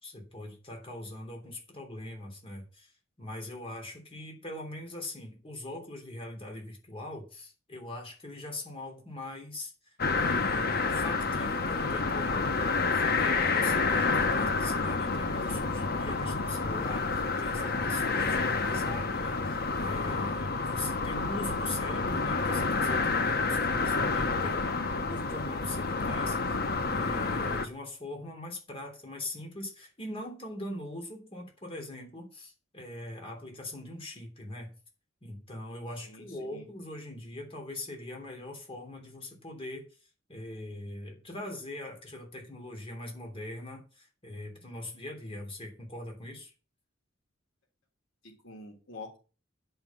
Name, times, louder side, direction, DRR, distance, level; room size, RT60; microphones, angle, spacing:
voice 1, 0.0-2.9 3.2-12.5 12.8-24.7 25.1-34.7 35.2-39.8 40.3-46.5, left 1 dB, 30° left, 1 dB, 3.4 m, -41 dB
sound 1, 10.0-27.7, left 4 dB, 50° left, 1.0 m, -29 dB
voice 2, 36.1-36.7 48.2-49.2, left 2 dB, 85° left, 2 dB, 3.4 m, -47 dB
10.5 x 5.7 x 7.2 m, 0.34 s
head